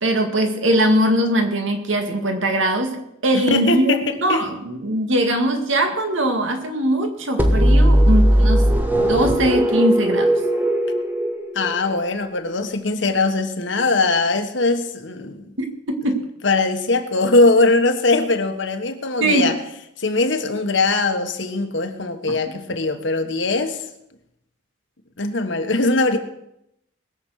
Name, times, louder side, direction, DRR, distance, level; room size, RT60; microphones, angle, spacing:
voice 1, 0.0-10.4 15.6-16.2 19.2-19.5 22.3-22.4, right 1 dB, 85° right, 5 dB, 2.1 m, -21 dB
voice 2, 3.3-4.4 11.5-15.5 16.4-19.5 20.0-23.8 25.2-26.2, left 3 dB, 75° left, 7 dB, 1.4 m, -21 dB
sound 1, 7.4-12.1, right 1 dB, 10° right, 1.0 m, -17 dB
20.5 x 7.2 x 6.5 m, 0.80 s
head